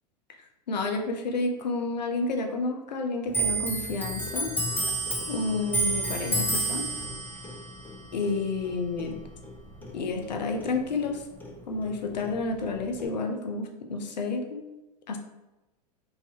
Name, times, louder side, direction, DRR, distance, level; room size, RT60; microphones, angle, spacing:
voice 1, 0.7-4.5 5.3-6.9 8.1-9.2 9.9-11.2 11.7-14.6 15.1-15.2, left 3 dB, 85° left, 4 dB, 0.5 m, -30 dB
Clock, 3.3-10.3 10.6-11.9 12.2-13.1, right 2 dB, 10° left, 0.5 m, -31 dB
3.8 x 2.6 x 2.8 m, 1.0 s
hypercardioid pair, 105°, 21 cm